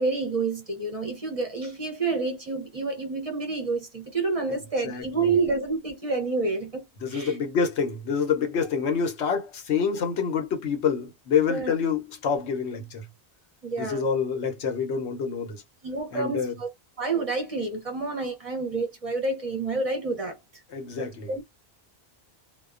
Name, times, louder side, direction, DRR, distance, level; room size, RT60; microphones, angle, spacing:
voice 1, 0.0-6.8 7.1-7.4 11.5-11.7 13.6-14.0 15.8-16.7 17.0-20.6 21.0-21.4, right 3 dB, 40° right, 0.6 m, -29 dB
voice 2, 4.8-5.3 7.0-13.1 13.8-15.6 16.1-16.6 20.7-21.3, left 6 dB, 85° left, 1.1 m, -27 dB
2.3 x 2.2 x 2.4 m
omnidirectional pair, 1.1 m